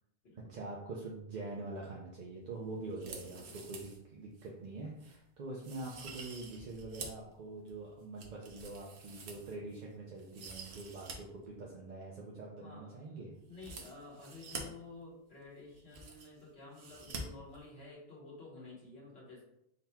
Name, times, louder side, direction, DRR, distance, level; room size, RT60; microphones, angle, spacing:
voice 1, 0.3-13.3, right 2 dB, 50° right, -3 dB, 0.6 m, -44 dB
voice 2, 2.8-3.5 12.6-13.0 13.5-19.4, left 3 dB, 75° left, -5 dB, 1.4 m, -52 dB
sound 1, 2.9-4.0 4.4-4.5 5.0-5.2 5.6-7.3 7.7-9.8 10.2-11.2 11.4-11.5 13.5-14.6 15.4-15.5 15.7-16.4 16.7-17.2 17.5-17.6, right 4 dB, 80° right, 1.0 m, -48 dB
4.1 x 4.0 x 2.2 m, 0.81 s
omnidirectional pair, 1.1 m